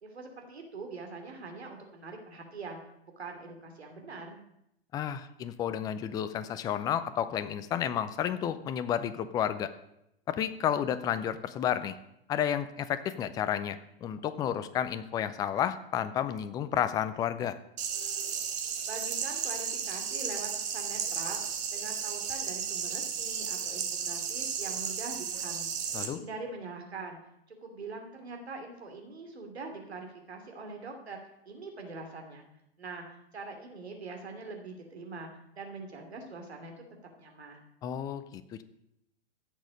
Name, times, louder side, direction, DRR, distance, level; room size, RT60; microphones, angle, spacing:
voice 1, 0.0-2.8 3.2-4.4 18.8-21.4 21.7-25.8 26.1-27.2 27.5-31.2 31.5-32.5 32.8-33.0 33.3-35.3 35.5-36.7 37.2-37.6, right 3 dB, 90° right, 3 dB, 2.9 m, -43 dB
voice 2, 4.9-9.7 10.3-11.9 12.3-17.6 25.9-26.2 37.8-38.6, left 9 dB, 10° left, 11 dB, 0.4 m, -31 dB
sound 1, 17.8-26.1, right 7 dB, 25° right, 1.4 m, -34 dB
16.0 x 6.5 x 5.1 m, 0.80 s
hypercardioid pair, 135°, 31 cm